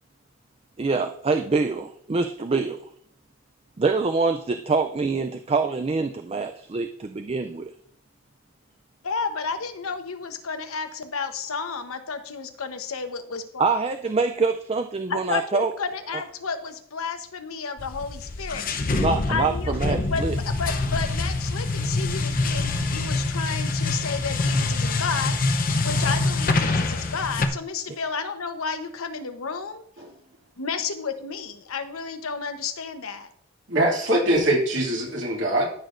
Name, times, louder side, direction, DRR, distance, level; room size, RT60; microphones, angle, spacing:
voice 1, 0.8-2.8 3.8-7.7 13.6-15.7 18.9-20.4, right 4 dB, 25° right, 7 dB, 0.3 m, -25 dB
voice 2, 9.0-13.6 15.1-18.6 19.3-25.3 25.8-29.8 30.6-33.3, left 5 dB, 80° left, 8 dB, 1.0 m, -31 dB
sound 1, 17.8-27.5, left 2 dB, 40° left, 0.7 m, -25 dB
voice 3, 33.7-35.7, right 1 dB, 55° right, -2 dB, 2.5 m, -22 dB
14.0 x 6.1 x 2.5 m, 0.63 s
head